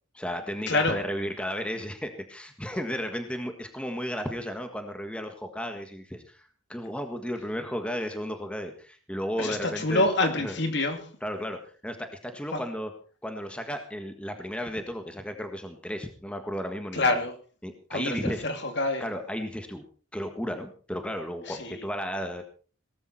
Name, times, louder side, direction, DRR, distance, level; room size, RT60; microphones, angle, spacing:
voice 1, 0.1-10.0 10.4-10.5 11.2-11.6 11.8-12.9 13.2-17.2 17.6-18.4 19.0-19.8 20.1-22.4, equal, 5° left, 6 dB, 1.6 m, -34 dB
voice 2, 0.7-1.0 9.4-11.1 12.5-12.6 16.9-17.3 17.9-19.1 21.5-21.8, left 2 dB, 55° left, 6 dB, 2.7 m, -27 dB
18.5 x 14.0 x 4.3 m, 0.39 s
head